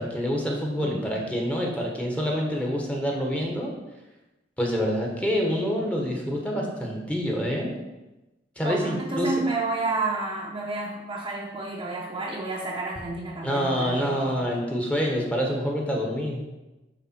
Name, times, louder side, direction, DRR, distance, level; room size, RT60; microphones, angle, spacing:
voice 1, 0.0-3.7 4.6-7.8 8.6-9.3 13.4-16.4, equal, 5° left, -1 dB, 1.2 m, -27 dB
voice 2, 0.8-1.2 8.6-14.4, right 3 dB, 25° right, -4 dB, 0.8 m, -31 dB
9.5 x 3.5 x 4.4 m, 1.1 s
head